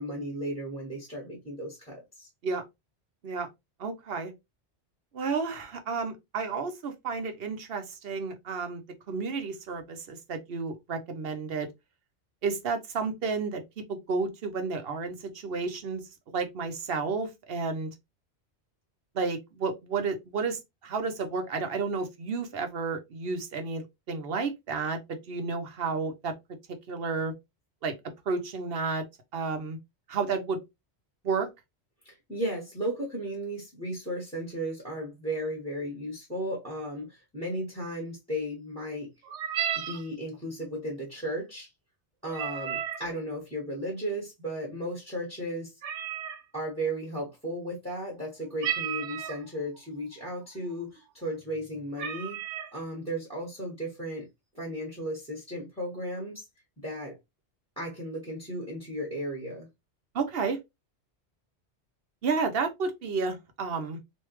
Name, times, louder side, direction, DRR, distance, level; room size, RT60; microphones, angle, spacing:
voice 1, 0.0-2.3 32.0-39.1 39.7-41.7 42.2-45.8 46.5-52.4 52.7-54.3 54.5-56.4 56.8-57.1 57.8-59.7, equal, 5° left, 1.5 m, -35 dB
voice 2, 3.8-4.3 5.1-8.8 9.1-11.7 12.4-13.6 13.9-16.0 16.3-17.9 19.1-26.3 26.9-27.3 27.8-27.9 28.3-29.0 29.3-29.8 30.1-30.6 31.2-31.5 60.1-60.6 62.2-64.0, right 4 dB, 65° right, 0.9 m, -31 dB
sound 1, 39.2-40.0 42.3-43.1 45.8-46.4 48.6-49.5 50.2-50.3 50.7-51.0 51.5-51.6 52.0-52.7, right 9 dB, 90° right, 0.9 m, -33 dB
3.2 x 2.7 x 3.0 m
omnidirectional pair, 1.1 m